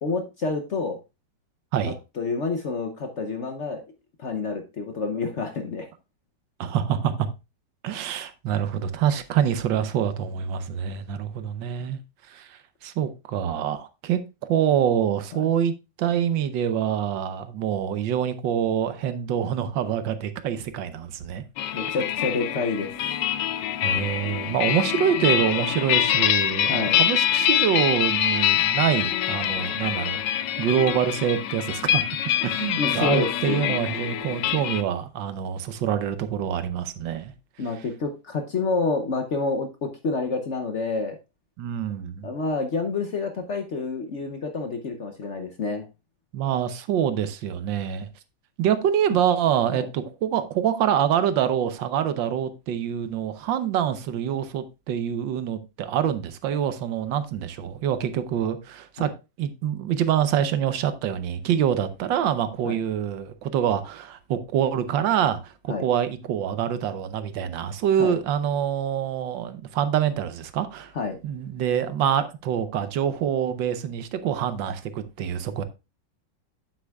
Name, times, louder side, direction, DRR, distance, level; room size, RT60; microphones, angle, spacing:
voice 1, 0.0-1.0 1.9-3.8 4.2-5.9 15.3-15.4 21.7-22.9 26.7-27.0 32.8-33.8 37.6-41.2 42.2-45.9 49.7-49.9 59.0-59.1 62.6-62.7 65.7-65.8 68.0-68.2 70.9-71.2, left 3 dB, 55° left, 0.8 m, -28 dB
voice 2, 6.6-7.1 7.8-12.0 12.3-14.2 14.5-21.4 23.8-30.2 30.6-32.0 32.4-37.3 41.6-42.3 46.3-48.1 48.6-59.1 59.4-70.9 71.2-75.6, right 9 dB, 80° right, 1.5 m, -25 dB
sound 1, 21.6-34.8, left 11 dB, 75° left, 1.3 m, -25 dB
8.7 x 8.0 x 2.3 m
omnidirectional pair, 2.0 m